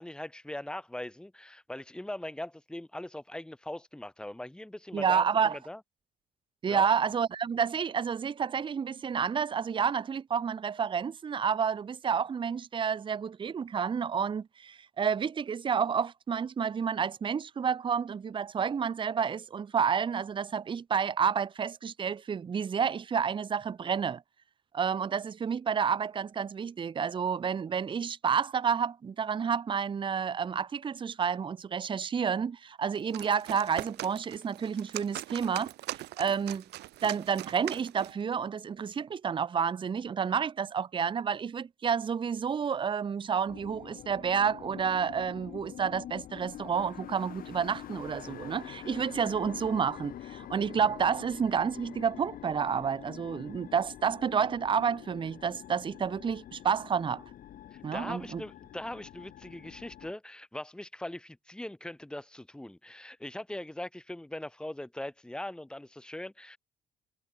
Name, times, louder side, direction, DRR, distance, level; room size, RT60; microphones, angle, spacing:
voice 1, 0.0-5.8 6.7-6.9 57.9-66.6, left 1 dB, 5° left, 1.5 m, -40 dB
voice 2, 4.9-5.6 6.6-24.2 24.7-35.7 36.2-36.6 37.0-57.2 57.8-58.4, right 7 dB, 30° right, 0.8 m, -30 dB
sound 1, 32.9-38.2, right 16 dB, 80° right, 5.5 m, -41 dB
sound 2, 43.5-60.1, left 11 dB, 55° left, 1.4 m, -46 dB
cardioid pair, 110°, 17 cm